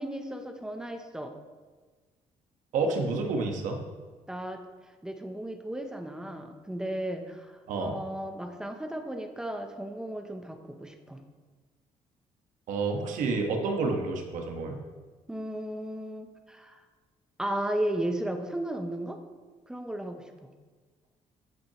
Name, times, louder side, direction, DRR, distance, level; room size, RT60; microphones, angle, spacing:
voice 1, 0.0-1.3 4.3-11.2 15.3-16.8 17.4-19.2 19.7-20.5, right 1 dB, 5° right, 5 dB, 0.7 m, -35 dB
voice 2, 2.7-3.8 7.7-8.0 12.7-14.8, right 3 dB, 85° right, 3 dB, 1.4 m, -29 dB
12.5 x 7.5 x 3.0 m, 1.4 s
cardioid pair, 165°, 13 cm